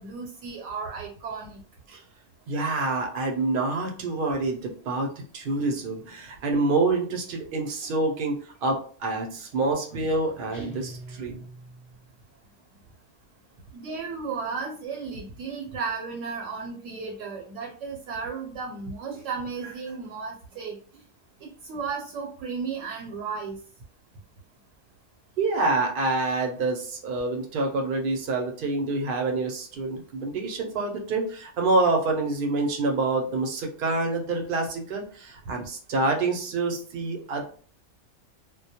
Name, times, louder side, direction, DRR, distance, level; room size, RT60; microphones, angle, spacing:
voice 1, 0.0-1.6 13.7-21.0 21.4-23.6, right 5 dB, 80° right, 0 dB, 0.9 m, -34 dB
voice 2, 2.5-11.4 25.4-37.6, right 3 dB, 60° right, 2 dB, 0.6 m, -27 dB
sound 1, 10.5-12.2, right 1 dB, 30° left, 0.7 m, -43 dB
2.2 x 2.1 x 2.7 m, 0.44 s
omnidirectional pair, 1.3 m